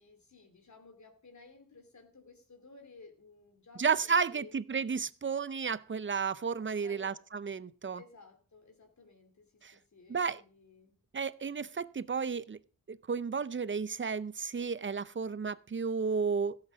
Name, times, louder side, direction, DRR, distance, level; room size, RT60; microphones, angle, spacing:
voice 1, 0.0-4.6 6.8-7.2 7.8-10.9, left 3 dB, 55° left, 2.8 m, -56 dB
voice 2, 3.8-8.0 9.6-9.7 10.1-10.4 11.1-12.6 12.9-16.6, right 5 dB, 35° right, 0.6 m, -32 dB
16.0 x 8.1 x 5.1 m
wide cardioid pair, 135°, 34 cm